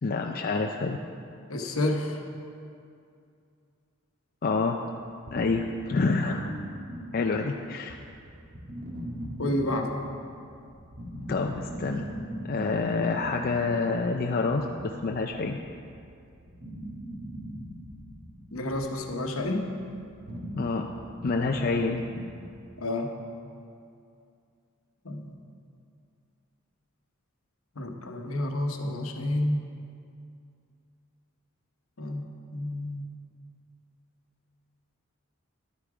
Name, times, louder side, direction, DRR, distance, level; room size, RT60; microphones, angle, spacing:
voice 1, 0.0-1.0 4.4-4.8 5.3-6.5 7.1-8.0 11.3-12.0 12.4-15.6 20.6-20.9 21.2-22.0, left 3 dB, 45° left, 3 dB, 0.4 m, -27 dB
voice 2, 1.5-2.2 9.4-9.9 18.5-19.7 22.8-23.1 25.0-25.3 27.8-29.6 32.0-32.3 32.5-33.0, left 1 dB, 70° left, 3 dB, 1.1 m, -29 dB
sound 1, 5.3-7.6 7.9-22.4, equal, 45° right, 1.6 m, -41 dB
11.5 x 8.6 x 4.8 m, 2.4 s
head